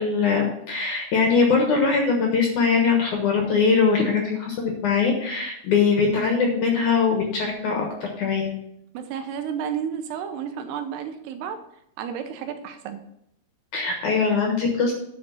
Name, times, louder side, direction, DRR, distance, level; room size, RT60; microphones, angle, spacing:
voice 1, 0.0-7.9 8.2-8.5 13.7-14.9, left 5 dB, 65° left, 1 dB, 2.1 m, -21 dB
voice 2, 8.9-11.6 12.0-13.0, right 8 dB, 80° right, 7 dB, 2.7 m, -31 dB
9.6 x 5.1 x 7.0 m, 0.78 s
omnidirectional pair, 5.0 m